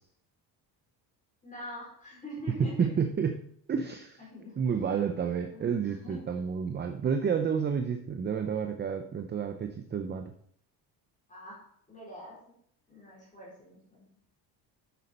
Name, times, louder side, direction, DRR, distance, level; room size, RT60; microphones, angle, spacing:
voice 1, 1.4-2.7 4.3-4.5 5.5-6.2 11.3-11.6 11.9-12.4 12.9-14.1, left 1 dB, 20° left, -5 dB, 4.1 m, -44 dB
voice 2, 2.5-4.3 4.6-10.3, right 6 dB, 25° right, 7 dB, 0.6 m, -30 dB
8.3 x 6.5 x 4.3 m, 0.66 s
cardioid pair, 130°, 40 cm